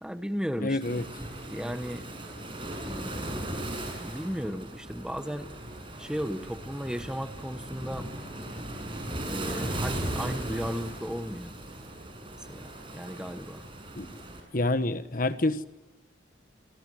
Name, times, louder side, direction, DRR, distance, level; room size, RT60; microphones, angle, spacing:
voice 1, 0.0-1.0 1.5-2.0 2.8-3.6 4.0-5.5 6.0-8.1 9.3-11.5 12.5-13.6, equal, 5° right, 10 dB, 1.1 m, -35 dB
voice 2, 0.6-1.0 13.9-14.1 14.5-15.6, left 2 dB, 50° left, 11 dB, 1.4 m, -27 dB
Waves surf, 0.8-14.4, right 1 dB, 30° right, 7.1 m, -37 dB
28.0 x 24.0 x 7.9 m, 1.1 s
head